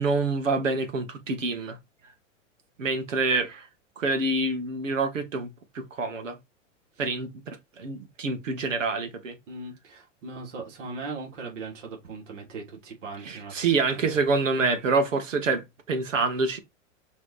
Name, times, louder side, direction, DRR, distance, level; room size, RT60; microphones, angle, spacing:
voice 1, 0.0-1.8 2.8-3.7 4.0-6.4 7.0-9.4 13.2-16.6, right 3 dB, 90° right, 2.1 m, -27 dB
voice 2, 9.5-13.7 13.9-14.2, right 3 dB, 70° right, 3.6 m, -39 dB
6.2 x 3.8 x 4.9 m
hypercardioid pair, 110°, 37 cm